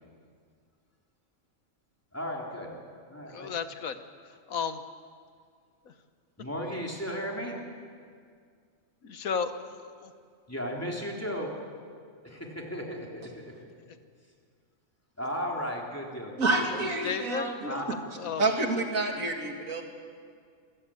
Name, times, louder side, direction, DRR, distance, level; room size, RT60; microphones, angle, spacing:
voice 1, 2.1-2.7 3.1-3.5 6.4-7.6 10.5-11.5 12.2-13.5 15.2-16.8 17.6-17.8, equal, 10° left, -1 dB, 3.5 m, -35 dB
voice 2, 3.2-4.0 4.5-4.8 9.0-10.1 17.0-18.4, left 6 dB, 90° left, 9 dB, 1.6 m, -34 dB
voice 3, 16.4-17.7 18.4-19.8, right 2 dB, 80° right, 3 dB, 2.7 m, -28 dB
27.0 x 15.0 x 8.9 m, 2.1 s
omnidirectional pair, 1.4 m